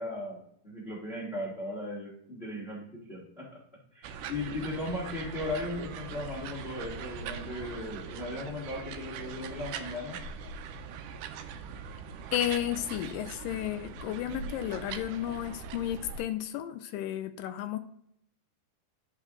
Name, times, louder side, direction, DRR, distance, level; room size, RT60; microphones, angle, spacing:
voice 1, 0.0-3.6 3.9-10.2, left 2 dB, 30° left, -4 dB, 1.1 m, -37 dB
sound 1, 4.0-16.2, right 6 dB, 80° right, 1.9 m, -41 dB
voice 2, 12.3-17.8, left 12 dB, 85° left, 8 dB, 2.0 m, -33 dB
10.5 x 5.3 x 3.7 m, 0.71 s
omnidirectional pair, 4.4 m